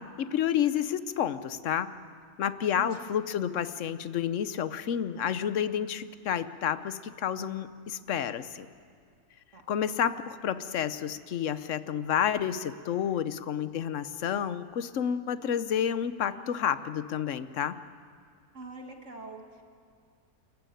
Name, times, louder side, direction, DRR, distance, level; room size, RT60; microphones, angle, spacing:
voice 1, 0.0-1.9 2.4-8.7 9.7-17.8, left 9 dB, 60° left, 13 dB, 1.1 m, -30 dB
voice 2, 18.5-19.6, right 3 dB, 55° right, 3 dB, 2.1 m, -44 dB
29.5 x 14.5 x 9.2 m, 2.2 s
omnidirectional pair, 1.6 m